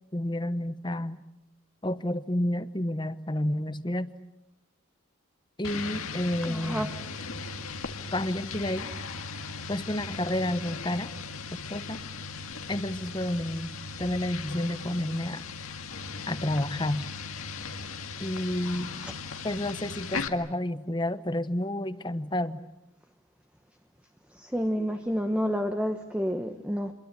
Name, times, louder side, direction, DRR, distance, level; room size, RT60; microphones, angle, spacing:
voice 1, 0.1-1.2 1.8-4.1 5.6-6.9 8.1-8.9 9.7-11.1 11.7-12.0 12.7-15.4 16.3-17.1 18.2-18.9 19.4-22.6, left 1 dB, 20° left, 12 dB, 1.0 m, -30 dB
sound 1, 5.6-20.3, left 4 dB, 80° left, 2.0 m, -38 dB
voice 2, 6.4-6.9 19.0-19.1 24.4-26.9, equal, 5° right, 5 dB, 1.1 m, -29 dB
28.5 x 23.0 x 8.3 m, 0.88 s
head